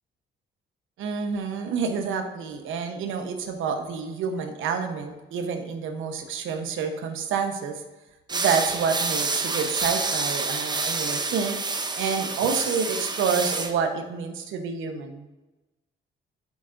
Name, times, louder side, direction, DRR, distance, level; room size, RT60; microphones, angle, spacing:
voice 1, 1.0-7.8 8.3-11.6 12.0-15.3, right 6 dB, 80° right, 5 dB, 0.9 m, -28 dB
sound 1, 8.3-13.7, right 3 dB, 20° right, 0.7 m, -28 dB
12.0 x 4.8 x 2.6 m, 1.1 s
cardioid pair, 90°, 20 cm